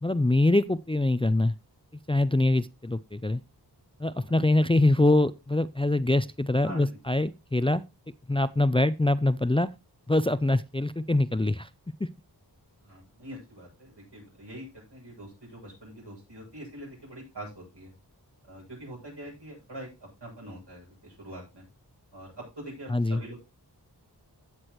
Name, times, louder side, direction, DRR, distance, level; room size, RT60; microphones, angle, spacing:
voice 1, 0.0-1.5 2.1-3.4 4.0-7.8 8.3-9.7 10.1-11.7 22.9-23.2, left 2 dB, 15° left, 0.4 m, -24 dB
voice 2, 6.6-7.0 12.8-17.9 18.4-19.9 20.2-21.6 22.1-23.4, right 1 dB, 80° right, 7.5 m, -44 dB
15.5 x 6.2 x 3.1 m
wide cardioid pair, 45°, 41 cm